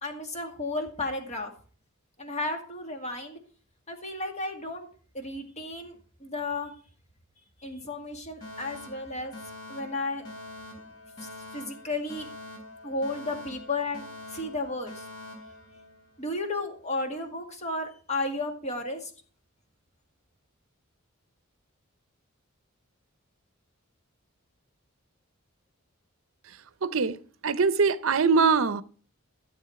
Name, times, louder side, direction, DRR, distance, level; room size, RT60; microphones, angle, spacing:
voice 1, 0.0-1.5 2.2-3.4 3.9-4.9 5.1-5.9 6.2-6.7 7.6-9.3 9.7-10.2 11.5-12.3 12.8-14.0 14.3-15.0 16.2-19.1, left 2 dB, 35° left, 2.1 m, -33 dB
Alarm, 8.4-16.4, left 1 dB, 80° left, 3.7 m, -45 dB
voice 2, 26.8-27.2 27.4-28.8, right 5 dB, 70° right, 0.6 m, -22 dB
14.0 x 7.5 x 4.7 m
head